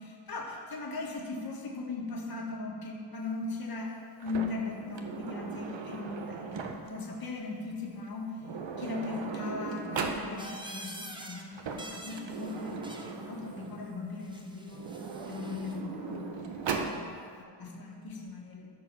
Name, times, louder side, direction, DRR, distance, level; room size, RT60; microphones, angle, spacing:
voice 1, 0.0-8.3 8.8-14.9 15.3-18.7, left 3 dB, 50° left, -1 dB, 1.6 m, -39 dB
Sliding door, 4.2-7.1 8.0-8.1 8.4-10.3 11.4-13.9 14.7-17.0, right 5 dB, 75° right, 0.9 m, -38 dB
sound 1, 10.4-11.4 11.7-13.2 14.2-15.8, right 1 dB, 10° right, 0.8 m, -46 dB
13.0 x 4.6 x 6.1 m, 2.3 s
wide cardioid pair, 125°, 45 cm